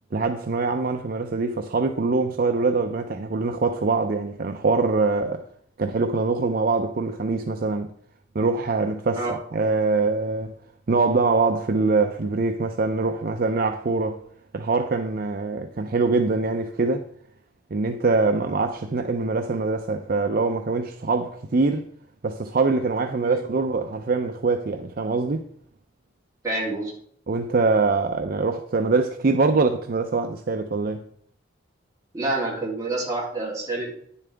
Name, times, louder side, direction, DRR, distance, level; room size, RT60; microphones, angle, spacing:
voice 1, 0.1-5.4 5.8-7.9 8.3-10.5 10.9-14.2 14.5-17.1 17.7-21.8 22.2-25.4 27.3-31.0, right 3 dB, 50° right, 0.5 m, -23 dB
voice 2, 26.4-26.9 32.1-33.9, right 2 dB, 15° right, 2.9 m, -27 dB
10.0 x 7.2 x 3.4 m
head